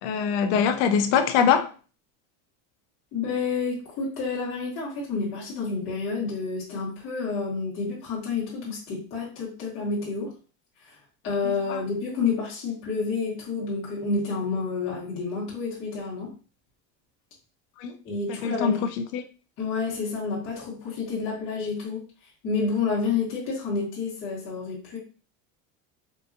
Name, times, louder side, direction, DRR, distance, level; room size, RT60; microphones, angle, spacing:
voice 1, 0.0-1.7 11.7-11.8 17.8-17.9 18.4-18.7 19.1-19.2, left 7 dB, 65° left, 0.6 m, -22 dB
voice 2, 3.1-10.3 10.8-11.0 11.2-16.3 18.0-18.9 19.6-22.0 22.4-25.0, left 4 dB, 35° left, 1.3 m, -29 dB
3.8 x 2.6 x 2.6 m
cardioid pair, 175°, 36 cm